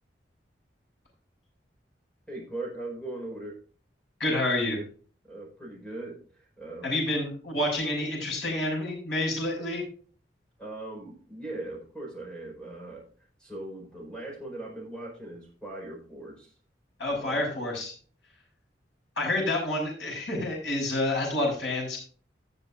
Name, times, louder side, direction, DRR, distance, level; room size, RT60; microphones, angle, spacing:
voice 1, 2.3-3.6 5.2-6.9 10.6-13.1 13.4-16.5 17.1-17.6, right 2 dB, 5° left, -1 dB, 4.8 m, -40 dB
voice 2, 4.2-4.8 6.8-9.8 17.0-17.9 19.2-22.0, left 1 dB, 75° left, -1 dB, 6.3 m, -28 dB
19.0 x 7.0 x 2.5 m, 0.41 s
head